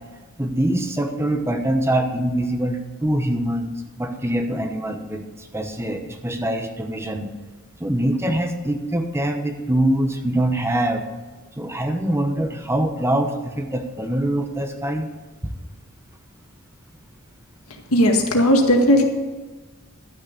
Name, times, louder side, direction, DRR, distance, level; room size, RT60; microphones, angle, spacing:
voice 1, 0.4-7.3 7.8-11.1 11.6-15.1 15.4-15.5, right 1 dB, 10° right, 6 dB, 1.0 m, -24 dB
voice 2, 17.9-19.0, equal, 85° left, 2 dB, 1.9 m, -16 dB
12.5 x 6.4 x 8.1 m, 1.2 s
head